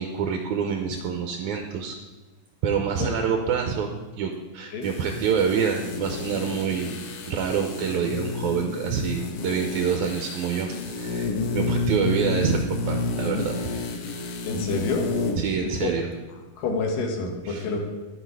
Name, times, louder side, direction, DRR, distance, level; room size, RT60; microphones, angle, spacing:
voice 1, 0.0-2.0 2.6-13.6 15.4-16.1 17.5-17.7, right 6 dB, 75° right, 4 dB, 1.9 m, -27 dB
sound 1, 4.8-15.5 15.8-15.9, left 3 dB, 70° left, 1.4 m, -30 dB
voice 2, 14.5-15.0 15.6-16.0 16.6-17.9, left 3 dB, 85° left, 2 dB, 3.1 m, -28 dB
10.5 x 8.1 x 4.7 m, 1.2 s
omnidirectional pair, 3.8 m